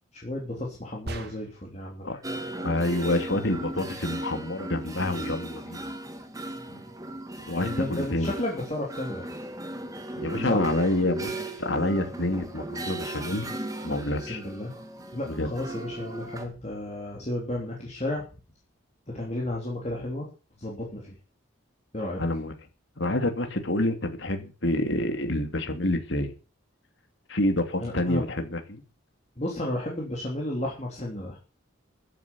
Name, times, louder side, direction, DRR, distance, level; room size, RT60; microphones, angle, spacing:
voice 1, 0.1-2.2 6.7-6.8 7.6-9.4 10.4-10.6 14.2-14.7 15.1-18.2 19.1-20.3 20.6-21.1 21.9-22.2 27.8-28.2 29.4-31.4, left 1 dB, 35° left, -2 dB, 3.3 m, -33 dB
sound 1, 1.1-1.8, right 1 dB, 50° right, 2.3 m, -38 dB
sound 2, 2.2-16.5, right 1 dB, 15° right, 1.9 m, -37 dB
voice 2, 2.6-5.9 7.4-8.3 10.2-11.3 11.6-13.5 13.8-14.4 15.3-15.5 22.2-22.5 23.0-26.3 27.3-28.8, left 1 dB, 65° left, 6 dB, 2.7 m, -27 dB
14.5 x 8.6 x 7.1 m, 0.35 s
head